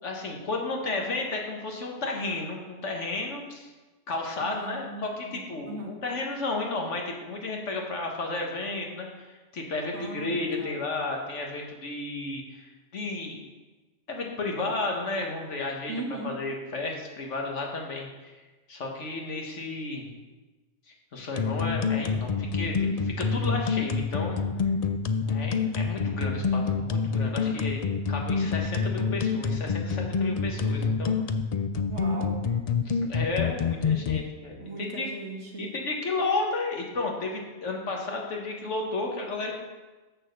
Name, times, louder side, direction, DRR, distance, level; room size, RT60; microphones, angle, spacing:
voice 1, 0.0-3.7 4.1-13.4 14.1-15.9 16.2-18.3 18.7-20.1 21.1-24.4 25.2-31.2 32.8-35.1 35.6-39.5, left 3 dB, 75° left, 1 dB, 1.7 m, -33 dB
voice 2, 4.4-6.0 9.9-10.8 15.9-16.4 31.9-32.4 34.6-35.7, right 2 dB, 65° right, -1 dB, 1.9 m, -38 dB
sound 1, 21.4-34.2, left 5 dB, 55° left, 0.4 m, -26 dB
7.5 x 6.5 x 6.5 m, 1.2 s
omnidirectional pair, 1.3 m